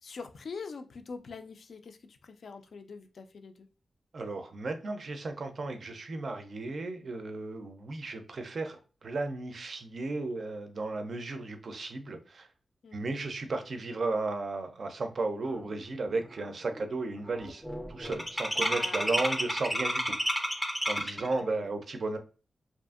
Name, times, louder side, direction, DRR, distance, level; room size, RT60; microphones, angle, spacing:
voice 1, 0.0-3.7 12.8-13.1 18.6-19.2 21.2-21.7, left 4 dB, 65° left, 0.3 m, -44 dB
voice 2, 4.1-12.5 12.9-17.6 17.9-20.3 20.9-22.2, right 3 dB, 55° right, 0.4 m, -34 dB
sound 1, 15.6-15.7 16.1-16.4 16.7-21.3, equal, ahead, 0.5 m, -31 dB
2.6 x 2.4 x 2.3 m
wide cardioid pair, 110°, 0 cm